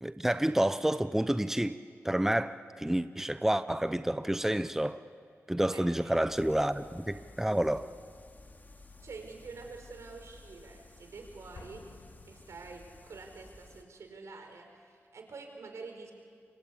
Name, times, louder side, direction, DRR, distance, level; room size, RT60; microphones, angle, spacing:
voice 1, 0.0-1.8 2.0-5.0 5.5-7.9, right 1 dB, 5° right, 12 dB, 0.8 m, -29 dB
voice 2, 5.7-6.6 9.0-11.9 12.2-16.1, right 4 dB, 75° right, 4 dB, 5.2 m, -47 dB
sound 1, 6.3-13.8, left 2 dB, 35° left, 2.8 m, -54 dB
Explosion, 11.5-13.3, left 3 dB, 65° left, 2.3 m, -53 dB
28.5 x 24.5 x 8.6 m, 2.1 s
cardioid pair, 55°, 5 cm